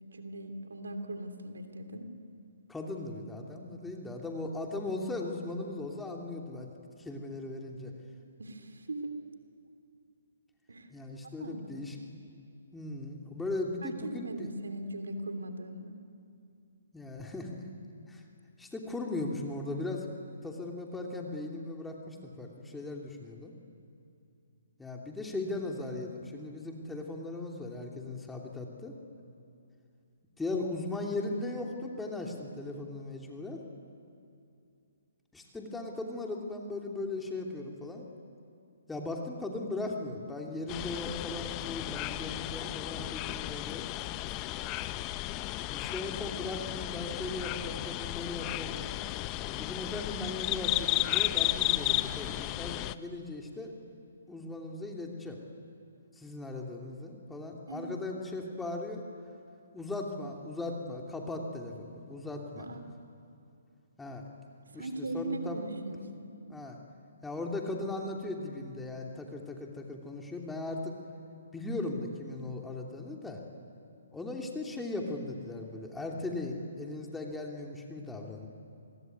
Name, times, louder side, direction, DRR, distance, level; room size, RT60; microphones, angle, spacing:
voice 1, 0.1-2.1 8.4-9.2 10.7-10.9 11.4-11.8 13.8-16.0 57.7-57.9 62.6-62.8 64.7-66.3, right 1 dB, 80° right, 8 dB, 3.1 m, -39 dB
voice 2, 2.7-6.7 7.0-7.9 10.9-12.0 12.7-14.5 16.9-17.7 18.1-18.2 18.6-20.1 20.4-23.5 24.8-28.9 30.4-33.6 35.3-38.0 38.9-43.9 45.7-48.9 49.6-53.7 54.3-55.4 56.2-59.0 59.7-62.8 64.0-64.2 64.6-65.6 66.5-66.8 67.2-71.0 71.5-73.4 74.1-78.5, left 2 dB, 5° left, 0 dB, 2.9 m, -38 dB
sound 1, 40.7-52.9, left 17 dB, 25° left, 0.7 m, -34 dB
27.5 x 21.0 x 9.5 m, 2.5 s
figure-of-eight pair, 140°, 0 cm